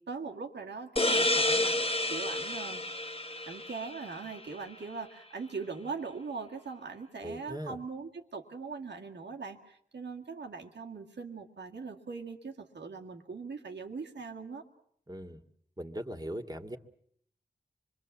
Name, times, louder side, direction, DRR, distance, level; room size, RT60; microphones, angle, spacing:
voice 1, 0.0-2.8 3.5-14.6, right 4 dB, 90° right, 2 dB, 2.1 m, -41 dB
sound 1, 1.0-4.4, left 1 dB, 35° left, 1.3 m, -30 dB
voice 2, 7.2-7.8 15.1-15.4 15.8-16.8, right 1 dB, 20° right, 5 dB, 2.0 m, -39 dB
25.5 x 22.5 x 7.3 m, 0.67 s
cardioid pair, 40°, 18 cm